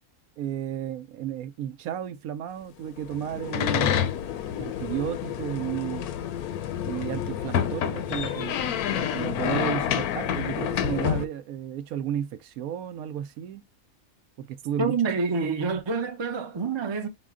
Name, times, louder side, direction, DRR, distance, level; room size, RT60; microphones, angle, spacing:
voice 1, 0.4-4.0 4.6-6.1 6.8-13.6 14.4-14.9, right 10 dB, 75° right, 1.0 m, -33 dB
sound 1, 3.0-11.3, left 10 dB, 80° left, 1.0 m, -28 dB
voice 2, 14.8-17.1, right 4 dB, 35° right, 0.4 m, -27 dB
4.9 x 2.1 x 3.6 m
omnidirectional pair, 1.6 m